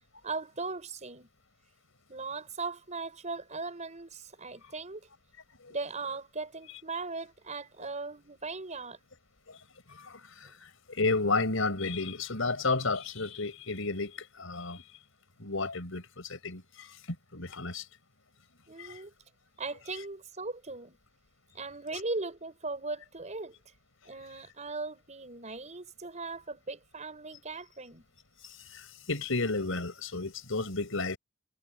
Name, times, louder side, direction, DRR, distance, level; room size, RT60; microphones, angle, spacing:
voice 1, 0.2-1.3 2.1-5.0 5.7-9.0 18.7-19.1 19.6-21.0 21.5-23.6 24.0-28.0, right 3 dB, 35° right, 5.5 m, -38 dB
voice 2, 9.9-14.8 15.4-17.8 18.8-19.0 28.4-31.2, left 3 dB, 80° left, 4.5 m, -32 dB
head